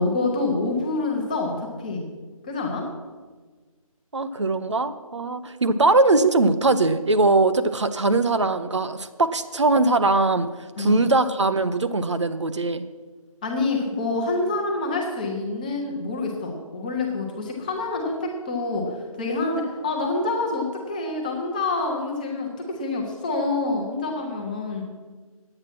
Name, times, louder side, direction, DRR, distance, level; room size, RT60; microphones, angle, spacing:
voice 1, 0.0-2.0 2.4-2.8 10.8-11.0 13.4-24.8, left 3 dB, 15° left, 1 dB, 1.0 m, -27 dB
voice 2, 4.1-10.5 10.8-12.9, right 2 dB, 50° right, 11 dB, 0.7 m, -21 dB
9.9 x 8.8 x 6.0 m, 1.4 s
figure-of-eight pair, 160°, 19 cm